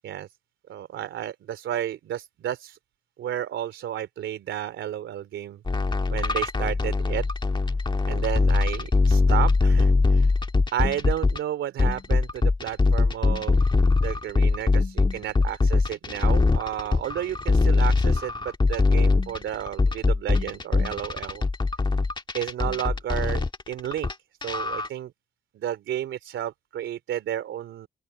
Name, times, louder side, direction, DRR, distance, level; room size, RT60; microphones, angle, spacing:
voice 1, 0.7-2.8 3.2-5.6 6.1-7.2 8.0-10.3 10.7-13.7 14.0-21.4 22.3-24.1 24.4-25.1 25.5-27.9, right 11 dB, 75° right, 3.1 m, -32 dB
sound 1, 5.7-11.4 11.8-24.1 24.4-24.9, left 3 dB, 25° left, 1.7 m, -22 dB
open air
cardioid pair, 90°, 20 cm